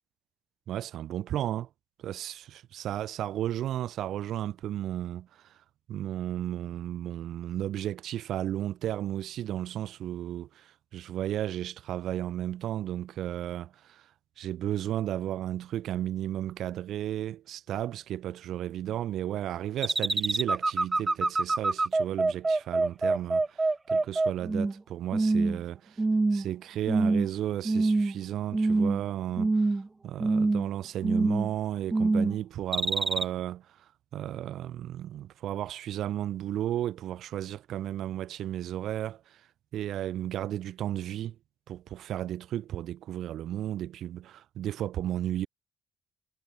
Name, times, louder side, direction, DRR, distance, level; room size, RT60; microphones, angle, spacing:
voice 1, 0.7-1.7 2.0-5.6 5.9-14.1 14.4-26.0 26.3-39.4 39.7-41.4 41.7-45.5, right 12 dB, 80° right, 2.7 m, -34 dB
sound 1, 19.8-24.8 25.1-25.6 26.0-26.5 26.9-27.3 27.7-28.2 28.5-29.1 29.4-29.9 30.2-30.7 31.0-31.5 31.9-32.4 32.7-33.2, right 3 dB, 20° right, 0.4 m, -25 dB
cardioid pair, 125°, 0 cm